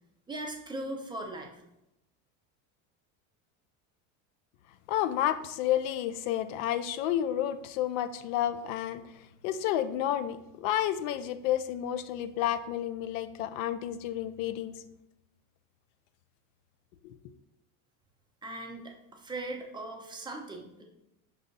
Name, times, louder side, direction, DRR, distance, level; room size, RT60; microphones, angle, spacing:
voice 1, 0.3-1.5 18.4-20.8, right 1 dB, 10° right, 1 dB, 0.6 m, -39 dB
voice 2, 4.9-9.0 9.4-14.7 17.0-17.2, left 11 dB, 70° left, 11 dB, 0.5 m, -30 dB
5.4 x 2.3 x 3.9 m, 0.87 s
supercardioid pair, 115°, 43 cm